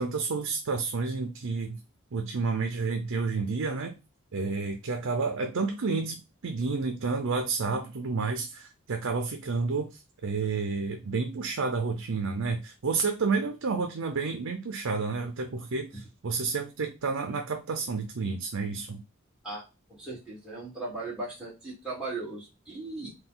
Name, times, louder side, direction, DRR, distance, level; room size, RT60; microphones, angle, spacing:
voice 1, 0.0-1.8 2.1-4.0 4.3-19.0, right 4 dB, 75° right, 5 dB, 0.5 m, -30 dB
voice 2, 19.4-23.1, right 2 dB, 5° right, -5 dB, 1.6 m, -38 dB
3.9 x 2.3 x 3.8 m, 0.28 s
head